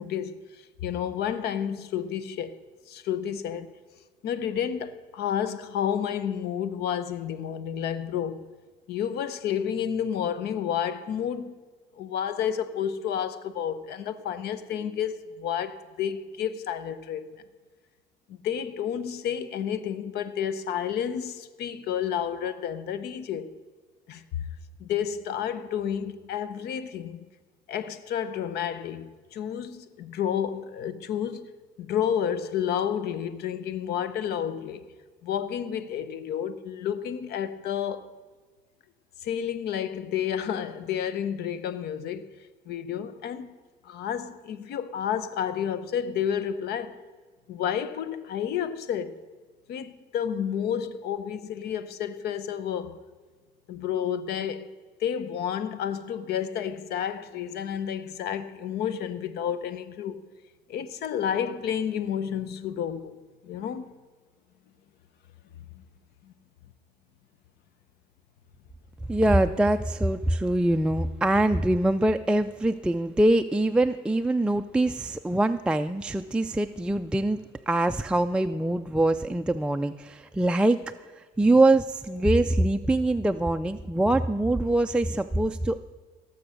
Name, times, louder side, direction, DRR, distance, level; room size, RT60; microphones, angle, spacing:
voice 1, 0.0-2.6 2.9-3.7 4.2-8.4 8.9-11.5 11.9-17.3 18.3-23.5 24.1-24.5 24.8-27.2 27.7-31.5 31.8-34.8 35.2-38.1 39.2-42.3 42.7-43.5 43.8-47.0 47.5-49.2 49.7-53.0 53.7-54.7 55.0-60.2 60.7-63.2 63.4-63.9 66.2-66.3, left 9 dB, 75° left, 0.9 m, -30 dB
voice 2, 69.1-77.4 77.7-80.8 81.4-85.8, right 1 dB, 5° right, 0.4 m, -23 dB
17.0 x 7.0 x 6.5 m
cardioid pair, 110°, 17 cm